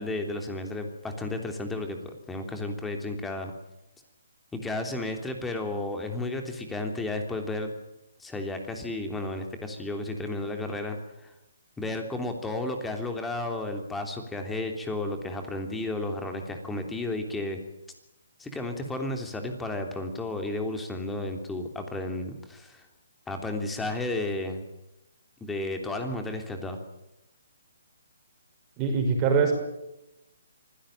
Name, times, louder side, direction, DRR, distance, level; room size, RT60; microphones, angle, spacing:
voice 1, 0.0-3.5 4.5-7.7 8.2-11.3 11.8-17.6 18.4-22.9 23.3-24.6 25.4-26.8, left 2 dB, 5° left, 5 dB, 3.2 m, -33 dB
voice 2, 28.8-29.5, right 5 dB, 20° right, 3 dB, 5.8 m, -23 dB
25.0 x 16.5 x 9.0 m, 0.91 s
hypercardioid pair, 155°, 0 cm